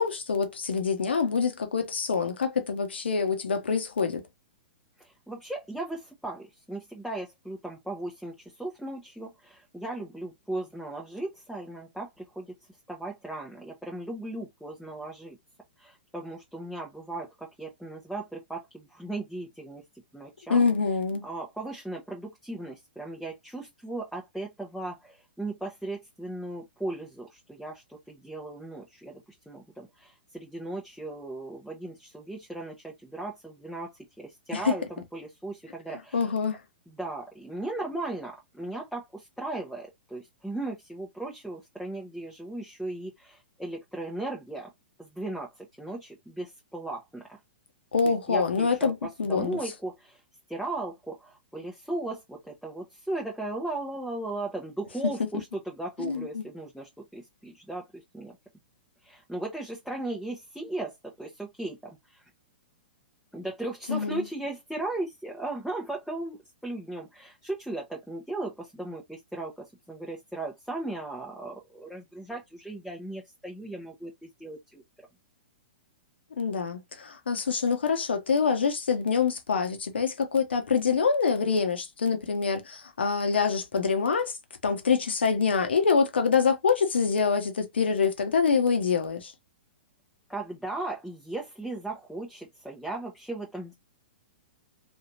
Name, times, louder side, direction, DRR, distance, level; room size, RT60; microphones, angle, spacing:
voice 1, 0.0-4.2 20.5-21.2 34.5-34.7 36.1-36.6 47.9-49.6 56.0-56.4 63.9-64.3 76.4-84.3 84.6-89.3, left 5 dB, 85° left, 1.0 m, -25 dB
voice 2, 5.0-12.5 12.9-15.4 15.8-19.8 20.1-20.7 21.2-36.3 36.9-44.7 45.0-47.4 48.0-50.2 50.5-58.3 59.0-62.2 63.3-66.4 66.6-74.8 90.3-93.7, right 2 dB, ahead, 0.9 m, -37 dB
3.2 x 2.7 x 2.7 m
hypercardioid pair, 125°, 6 cm